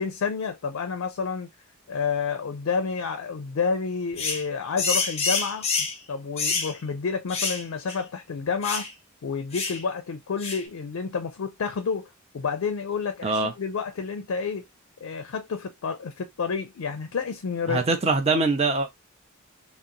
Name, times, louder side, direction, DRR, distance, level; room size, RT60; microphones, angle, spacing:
voice 1, 0.0-1.5 1.9-8.9 9.2-12.1 12.3-14.7 15.0-17.8, left 5 dB, 80° left, 0.4 m, -29 dB
sound 1, 4.2-4.4 4.8-6.0 6.4-6.7 7.3-7.6 7.9-8.0 8.6-8.9 9.5-9.8 10.4-10.7, left 4 dB, 30° left, 0.7 m, -27 dB
voice 2, 13.2-13.5 17.7-18.9, right 3 dB, 30° right, 0.5 m, -23 dB
2.7 x 2.0 x 3.7 m
head